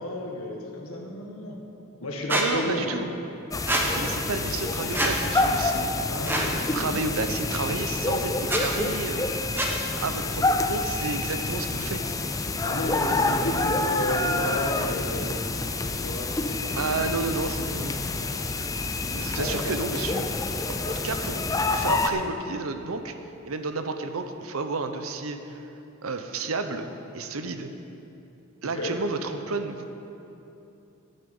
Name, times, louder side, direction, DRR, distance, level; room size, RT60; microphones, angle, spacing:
voice 1, 0.0-1.6 2.0-2.9 5.9-7.0 12.6-15.4 15.9-16.8 19.4-19.7 28.6-29.0, left 1 dB, 90° left, 0 dB, 1.7 m, -32 dB
Squeak, 2.3-2.5 3.7-3.8 4.9-5.1 6.2-6.5 7.5-7.6 8.4-8.6 9.6-9.7, right 1 dB, 10° right, 1.1 m, -25 dB
voice 2, 2.3-3.1 3.8-5.9 6.7-9.3 10.0-12.1 16.8-18.0 19.1-21.4 21.7-23.1 23.4-25.6 26.0-26.9 27.1-27.7 28.6-30.0, right 3 dB, 80° right, 8 dB, 0.8 m, -31 dB
sound 1, 3.5-22.1, left 3 dB, 15° left, 0.4 m, -28 dB
sound 2, 10.4-12.5 12.8-12.9 13.3-13.7 14.0-14.2 14.5-17.3 17.6-17.7 18.1-18.5 18.8-19.0 19.3-19.8, left 1 dB, 55° left, 1.3 m, -44 dB
11.5 x 9.1 x 5.5 m, 2.9 s
head